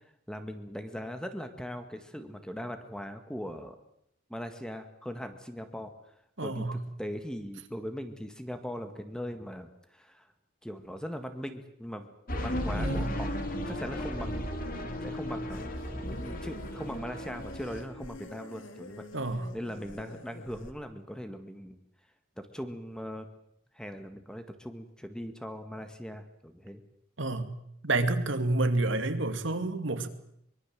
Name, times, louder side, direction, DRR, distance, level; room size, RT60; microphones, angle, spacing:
voice 1, 0.3-3.8 4.3-5.9 6.4-10.3 10.6-12.1 12.4-13.4 13.7-14.5 15.0-15.7 16.1-19.0 19.5-21.8 22.4-23.3 23.7-26.8, equal, 5° left, 8 dB, 1.8 m, -40 dB
voice 2, 6.4-6.8 12.7-13.1 19.1-19.5 27.2-27.5 27.8-30.1, right 2 dB, 70° right, 8 dB, 2.4 m, -29 dB
sound 1, 12.3-17.8, equal, 45° left, 3.5 m, -35 dB
sound 2, 15.5-20.7, left 2 dB, 75° left, 2.2 m, -47 dB
24.0 x 22.5 x 7.6 m, 0.74 s
head